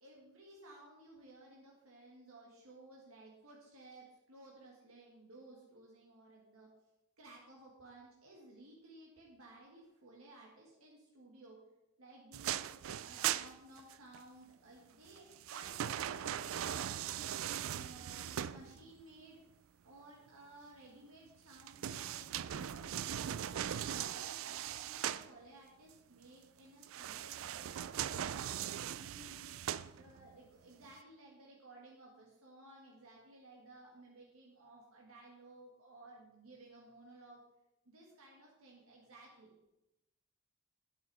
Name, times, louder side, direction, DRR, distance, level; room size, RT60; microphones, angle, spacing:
voice 1, 0.0-6.7 7.2-11.6 12.0-12.6 13.0-16.9 17.6-19.4 19.8-28.4 28.9-29.6 30.0-37.4 37.9-39.5, right 2 dB, 90° right, -2 dB, 1.9 m, -57 dB
sound 1, 12.3-14.2 15.1-19.0 21.5-25.3 26.8-30.3 30.8-30.9, right 10 dB, 75° right, 0.4 m, -40 dB
9.1 x 8.8 x 4.8 m, 0.95 s
head